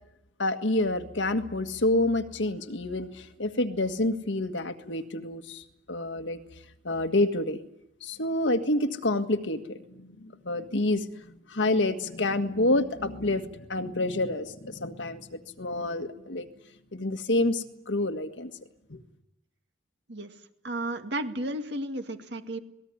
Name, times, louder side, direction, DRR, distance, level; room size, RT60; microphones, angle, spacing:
voice 1, 0.4-6.4 6.8-7.6 8.0-16.5 16.9-18.5 18.9-19.0, left 2 dB, 85° left, 7 dB, 1.7 m, -28 dB
voice 2, 20.6-22.6, right 1 dB, 70° right, 6 dB, 2.2 m, -33 dB
26.5 x 19.0 x 9.7 m, 0.87 s
head